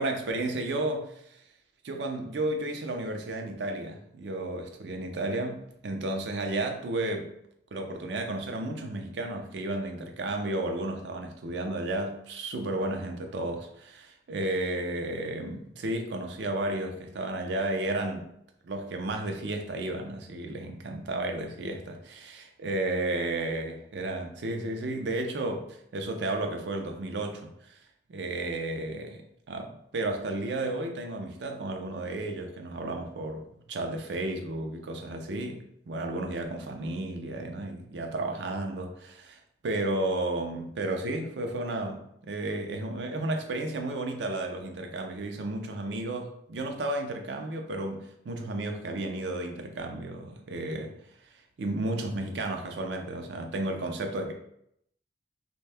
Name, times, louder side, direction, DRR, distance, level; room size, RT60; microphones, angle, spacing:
voice 1, 0.0-1.4 1.8-7.3 7.7-18.3 18.6-27.8 28.1-29.2 29.5-50.9 51.6-54.3, right 2 dB, 75° right, 4 dB, 0.5 m, -33 dB
2.6 x 2.2 x 3.3 m, 0.74 s
head